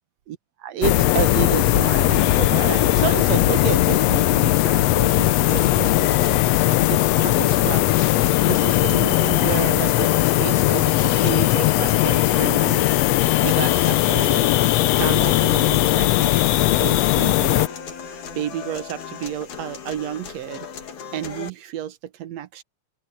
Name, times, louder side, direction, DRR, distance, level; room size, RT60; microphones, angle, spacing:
voice 1, 0.3-8.1 8.4-10.1 10.4-12.9 13.4-14.5 14.9-16.5 16.8-17.7 18.4-20.7 21.1-22.6, right 10 dB, 65° right, 1.9 m, -31 dB
sound 1, 0.8-17.7, left 16 dB, 85° left, 1.4 m, -19 dB
sound 2, 5.5-21.5, left 7 dB, 65° left, 3.6 m, -36 dB
open air
omnidirectional pair, 3.7 m